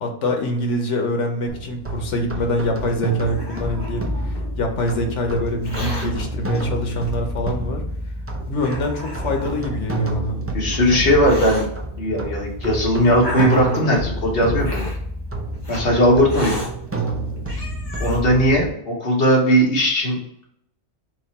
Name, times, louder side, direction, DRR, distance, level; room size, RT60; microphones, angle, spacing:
voice 1, 0.0-7.8 8.5-10.4, left 1 dB, 90° left, 3 dB, 1.2 m, -25 dB
sound 1, 1.5-18.7, right 2 dB, 20° right, 0.4 m, -28 dB
Hiss, 2.9-4.5 5.5-6.1 7.0-7.1 7.9-8.0 8.6-9.6 10.4-11.7 12.5-14.0 14.6-15.0 15.6-15.8 16.3-16.7 17.2-17.3 17.5-18.2, left 1 dB, 20° left, 1.1 m, -32 dB
voice 2, 10.5-11.7 12.0-14.9 15.7-16.6 18.0-20.2, equal, 55° left, -2 dB, 1.4 m, -18 dB
3.7 x 3.0 x 4.1 m, 0.72 s
omnidirectional pair, 1.2 m